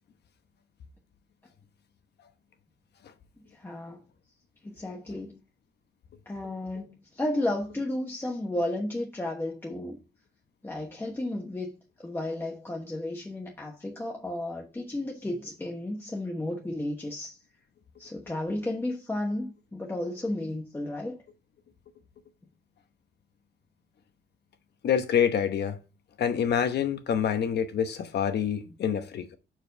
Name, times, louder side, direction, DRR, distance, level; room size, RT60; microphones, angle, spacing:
voice 1, 3.5-4.0 4.6-5.4 6.3-10.0 10.6-11.7 12.0-17.4 18.0-21.2, left 1 dB, 10° left, 1.1 m, -33 dB
voice 2, 24.8-25.8 26.2-29.3, left 8 dB, 70° left, 1.0 m, -26 dB
7.0 x 4.7 x 4.6 m
wide cardioid pair, 165°, 18 cm